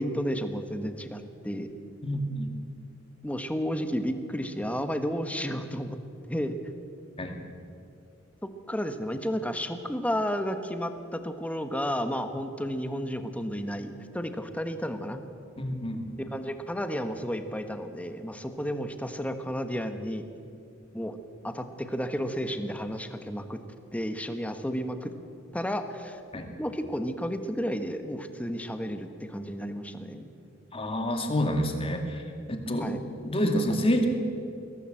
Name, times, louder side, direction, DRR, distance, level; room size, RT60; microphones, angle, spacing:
voice 1, 0.0-1.7 3.2-6.0 6.3-6.6 8.4-15.2 16.3-20.2 20.9-21.2 21.4-23.6 23.9-25.1 25.5-26.2 26.6-30.3 32.8-33.0, equal, 5° left, 8 dB, 1.3 m, -32 dB
voice 2, 2.0-2.5 7.2-7.4 15.6-16.1 26.3-26.5 30.7-32.2 32.5-34.1, equal, 30° left, 4 dB, 2.3 m, -28 dB
22.5 x 17.0 x 7.7 m, 2.4 s
head